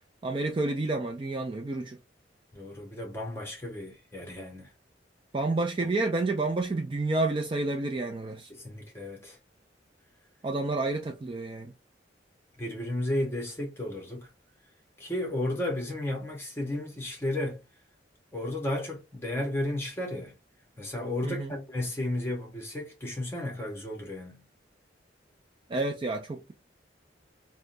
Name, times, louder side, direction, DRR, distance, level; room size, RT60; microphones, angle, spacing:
voice 1, 0.2-2.0 5.3-8.5 10.4-11.7 21.2-21.5 25.7-26.5, right 2 dB, 30° right, 0.4 m, -29 dB
voice 2, 2.5-4.7 8.5-9.4 12.6-14.3 15.0-17.6 18.3-20.3 20.8-24.4, left 1 dB, 15° left, 0.9 m, -33 dB
3.4 x 2.2 x 2.6 m
head